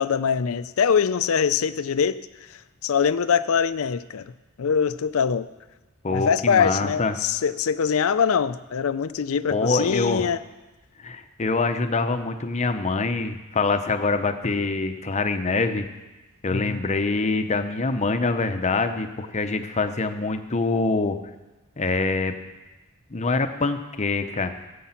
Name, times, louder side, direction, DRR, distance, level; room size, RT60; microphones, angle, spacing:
voice 1, 0.0-2.2 2.5-4.3 4.6-5.5 6.1-10.4 16.5-16.8, left 7 dB, 65° left, 14 dB, 0.5 m, -23 dB
voice 2, 6.0-7.1 9.5-10.3 11.0-15.8 16.4-21.2 21.8-22.3 23.1-24.5, left 3 dB, 30° left, 8 dB, 0.8 m, -25 dB
14.0 x 8.5 x 5.8 m, 1.1 s
head